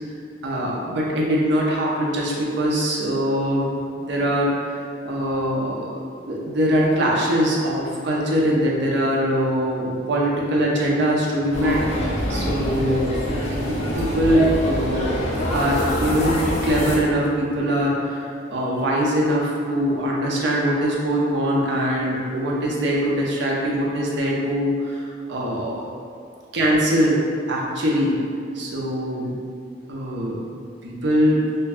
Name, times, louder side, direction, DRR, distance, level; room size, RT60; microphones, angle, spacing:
voice 1, 0.4-3.7 4.0-4.8 5.0-13.1 13.5-25.9 26.5-28.2 28.5-29.4 29.9-30.4 30.8-31.5, equal, 65° right, -3 dB, 0.5 m, -22 dB
sound 1, 11.5-17.0, left 1 dB, 35° left, 0.5 m, -25 dB
2.5 x 2.2 x 3.3 m, 2.3 s
head